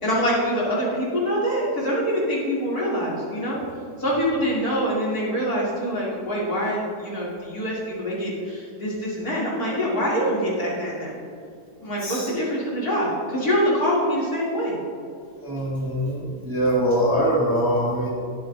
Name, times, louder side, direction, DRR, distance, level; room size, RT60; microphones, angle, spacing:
voice 1, 0.0-3.6 4.0-11.1 11.8-14.8, equal, 60° left, -6 dB, 3.2 m, -25 dB
voice 2, 15.3-18.1, equal, 10° right, -6 dB, 1.9 m, -23 dB
20.5 x 8.0 x 2.6 m, 2.4 s
omnidirectional pair, 1.9 m